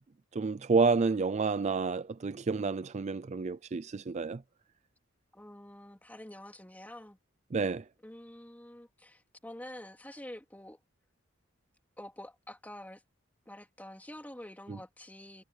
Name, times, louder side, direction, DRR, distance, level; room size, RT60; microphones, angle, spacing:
voice 1, 0.3-4.4 7.5-7.8 14.7-14.8, right 4 dB, 35° right, 0.4 m, -29 dB
voice 2, 5.3-7.2 8.0-10.8 12.0-13.0 13.5-15.4, left 1 dB, 10° left, 2.9 m, -47 dB
head